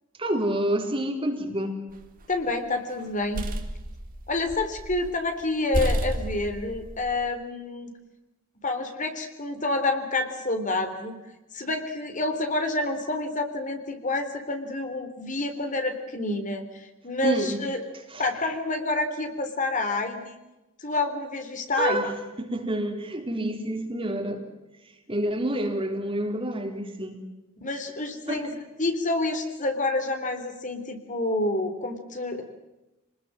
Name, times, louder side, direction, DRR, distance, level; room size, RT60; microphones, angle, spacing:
voice 1, 0.2-1.8 17.2-17.6 18.1-18.2 21.8-24.4 24.8-27.2 28.3-28.5, right 1 dB, 25° right, 3.9 m, -28 dB
sound 1, 1.9-2.5 3.0-5.1 5.4-5.5 5.7-7.2, equal, 40° right, 3.2 m, -31 dB
voice 2, 2.3-3.4 4.3-7.9 8.6-11.2 11.5-17.8 18.2-20.4 20.8-22.0 27.6-28.5 28.8-32.4, left 2 dB, 35° left, 3.6 m, -28 dB
28.0 x 20.5 x 7.7 m
head